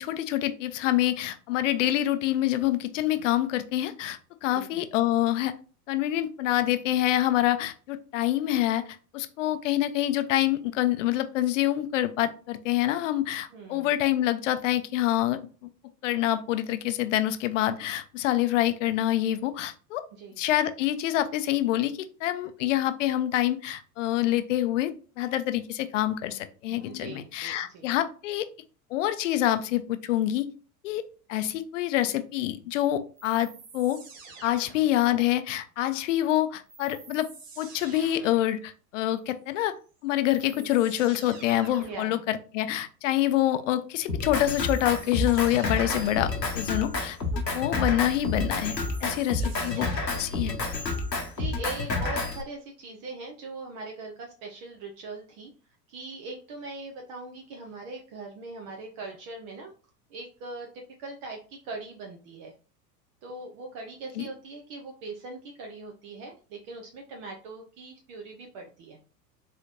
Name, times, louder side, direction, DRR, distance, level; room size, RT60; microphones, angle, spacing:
voice 1, 0.0-5.5 5.9-8.8 9.1-15.4 16.0-20.0 20.4-28.5 28.9-30.5 30.8-31.0 31.3-34.0 34.4-37.3 37.6-39.7 40.0-50.5 64.2-64.3, left 13 dB, 50° left, 11 dB, 0.6 m, -26 dB
voice 2, 13.5-13.9 20.2-20.4 26.9-27.9 40.5-40.7 41.8-42.2 46.2-46.4 49.4-49.8 51.4-55.5 55.9-59.7 60.1-62.5 63.2-69.0, right 3 dB, 20° right, 1 dB, 0.3 m, -41 dB
sound 1, 33.2-35.2 36.7-38.5 39.8-39.9 40.2-42.1 44.5-46.3 48.0-50.4, right 4 dB, 50° right, 1.4 m, -48 dB
Drum kit, 44.1-52.4, left 3 dB, 85° left, 0.9 m, -29 dB
4.0 x 3.0 x 2.4 m, 0.37 s
figure-of-eight pair, 85°, 49 cm